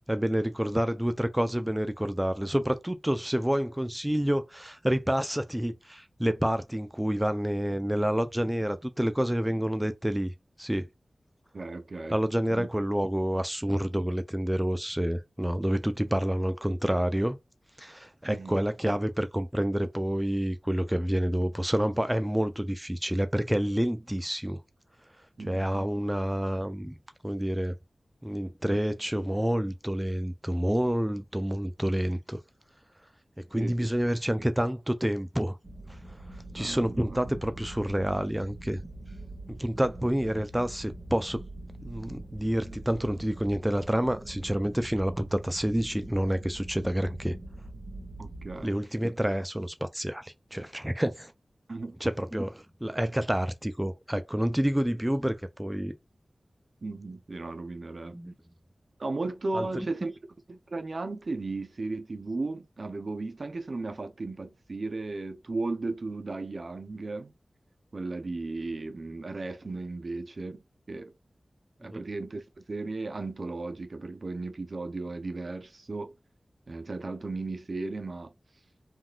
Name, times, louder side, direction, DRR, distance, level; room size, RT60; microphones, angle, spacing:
voice 1, 0.1-10.3 10.6-10.8 12.1-17.4 17.8-24.6 25.4-26.9 27.2-27.8 28.2-32.4 33.5-35.6 36.5-38.8 39.5-41.4 41.8-47.4 48.6-51.3 52.0-55.9 58.1-58.3 59.5-59.9 71.9-72.0, equal, 10° right, 0.4 m, -28 dB
voice 2, 11.5-12.2 12.5-12.7 18.2-18.6 25.4-25.9 28.7-28.8 33.5-33.9 36.5-37.2 48.2-48.8 51.7-51.9 56.8-58.2 59.0-60.1 60.5-67.3 67.9-71.1 71.8-72.4 72.7-76.1 76.7-78.3, right 3 dB, 65° right, 0.5 m, -35 dB
sound 1, 35.6-48.6, right 1 dB, 30° right, 1.4 m, -44 dB
3.6 x 2.3 x 2.3 m
wide cardioid pair, 55°, 0 cm